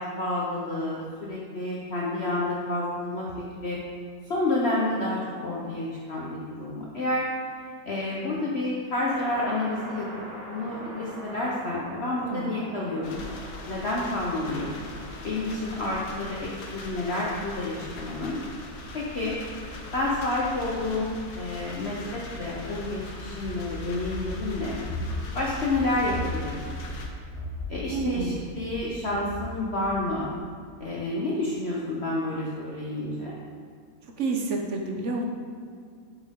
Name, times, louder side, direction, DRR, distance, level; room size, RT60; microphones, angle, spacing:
voice 1, 0.0-3.8 4.3-7.3 7.8-10.1 10.5-13.2 13.7-14.7 15.2-18.4 18.9-19.4 19.9-24.8 25.3-26.6 27.7-30.3 30.8-33.3, left 2 dB, 45° left, -5 dB, 1.0 m, -29 dB
sound 1, 9.1-23.0, right 1 dB, 80° right, 3.0 m, -45 dB
sound 2, 13.0-27.1, left 2 dB, 70° left, 1.5 m, -40 dB
Run, 23.4-30.4, left 1 dB, 20° right, 1.6 m, -37 dB
voice 2, 27.9-28.4 34.2-35.2, right 3 dB, 55° right, 2 dB, 0.9 m, -29 dB
8.0 x 7.2 x 3.6 m, 2.2 s
omnidirectional pair, 1.8 m